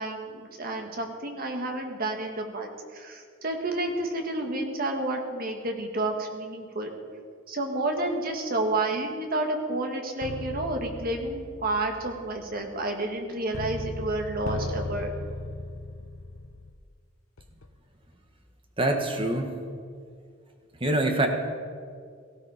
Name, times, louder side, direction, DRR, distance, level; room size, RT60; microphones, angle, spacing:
voice 1, 0.0-6.9 7.5-15.1, right 2 dB, 45° right, 3 dB, 1.9 m, -30 dB
sound 1, 10.2-16.8 17.4-17.7, left 2 dB, 90° left, 0.8 m, -37 dB
voice 2, 18.8-19.5 20.8-21.3, right 1 dB, 25° right, 4 dB, 1.5 m, -24 dB
17.5 x 15.0 x 5.1 m, 2.1 s
head